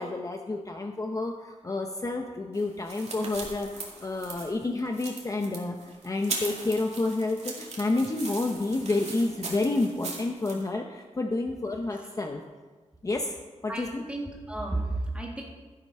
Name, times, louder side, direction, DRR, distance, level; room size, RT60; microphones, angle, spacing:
voice 1, 0.0-12.4 13.0-13.4 13.6-14.0, left 2 dB, 25° left, 3 dB, 0.7 m, -29 dB
sound 1, 2.5-10.6, right 3 dB, 60° right, 2.3 m, -39 dB
voice 2, 13.7-15.4, right 2 dB, 10° right, -1 dB, 1.9 m, -32 dB
13.0 x 7.4 x 5.4 m, 1.3 s
wide cardioid pair, 155°, 12 cm